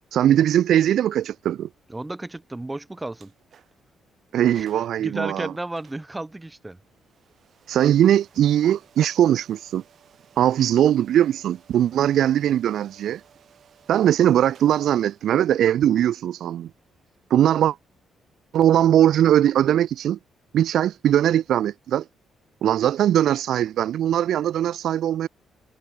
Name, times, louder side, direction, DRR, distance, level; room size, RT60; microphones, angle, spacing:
voice 1, 0.1-1.7 4.3-5.5 7.7-9.8 10.4-13.2 13.9-16.7 17.3-17.8 18.5-20.2 20.5-22.0 22.6-25.3, right 11 dB, 65° right, 0.5 m, -20 dB
voice 2, 1.9-3.3 4.6-4.7 5.0-6.8, right 2 dB, 10° right, 1.0 m, -33 dB
sound 1, 3.1-3.9 4.3-4.4 4.6-5.0 5.8-18.5, right 8 dB, 50° right, 6.9 m, -58 dB
cardioid pair, 160°, 0 cm